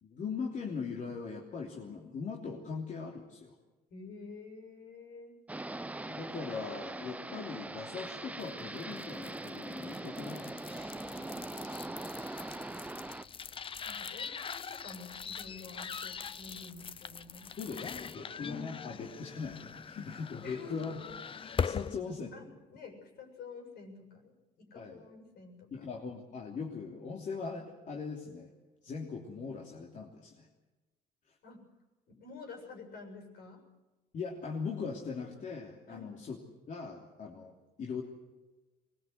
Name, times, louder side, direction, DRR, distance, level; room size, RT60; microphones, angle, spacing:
voice 1, 0.0-3.5 6.1-10.4 17.6-21.0 21.4-22.4 24.7-25.0 25.7-28.5 28.8-30.5 31.3-31.4 34.1-36.4 36.7-38.0, left 5 dB, 50° left, -1 dB, 3.2 m, -40 dB
voice 2, 3.9-5.4 9.9-11.4 13.8-17.6 20.4-20.8 22.3-25.9 31.4-31.6 32.1-33.6 35.9-36.2, left 4 dB, 70° left, 3 dB, 7.2 m, -50 dB
sound 1, 5.5-13.2, right 2 dB, 10° right, 0.7 m, -42 dB
sound 2, 8.3-22.0, left 6 dB, 30° left, 0.7 m, -42 dB
24.0 x 21.0 x 8.1 m, 1.1 s
cardioid pair, 110°, 17 cm